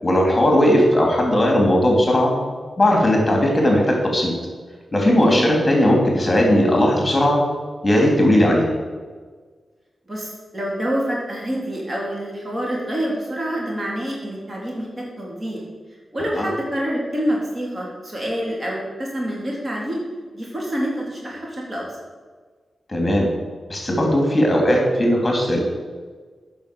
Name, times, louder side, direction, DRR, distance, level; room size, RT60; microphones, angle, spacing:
voice 1, 0.0-2.3 2.8-4.3 4.9-7.4 7.8-8.7 16.3-16.5 22.9-23.3 23.7-25.6, left 1 dB, 25° left, 0 dB, 3.2 m, -17 dB
voice 2, 10.1-15.6 16.1-20.0 20.3-21.8, equal, 35° right, -3 dB, 3.7 m, -27 dB
8.8 x 6.3 x 6.9 m, 1.5 s
cardioid pair, 50°, 0 cm